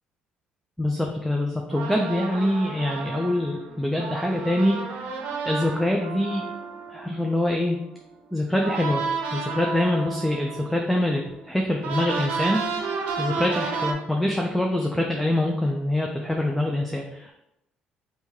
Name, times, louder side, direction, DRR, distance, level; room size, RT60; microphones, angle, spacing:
voice 1, 0.8-5.0 5.4-6.4 6.9-7.8 8.3-9.0 9.3-17.3, left 1 dB, 5° left, 0 dB, 0.4 m, -25 dB
sound 1, 1.7-8.1 8.6-13.9, right 4 dB, 80° right, 0.6 m, -32 dB
3.0 x 2.7 x 3.6 m, 0.83 s
cardioid pair, 95°, 3 cm